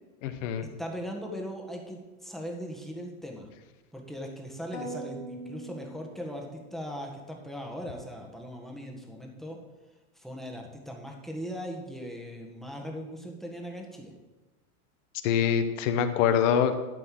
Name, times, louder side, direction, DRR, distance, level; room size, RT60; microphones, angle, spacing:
voice 1, 0.2-0.7 15.2-16.7, left 8 dB, 55° left, 9 dB, 1.2 m, -24 dB
voice 2, 0.8-3.5 3.9-9.6 10.2-14.1, equal, ahead, 0 dB, 1.6 m, -39 dB
sound 1, 4.7-6.7, right 1 dB, 85° left, 2.4 m, -41 dB
12.0 x 4.3 x 7.6 m, 1.1 s
supercardioid pair, 125°, 44 cm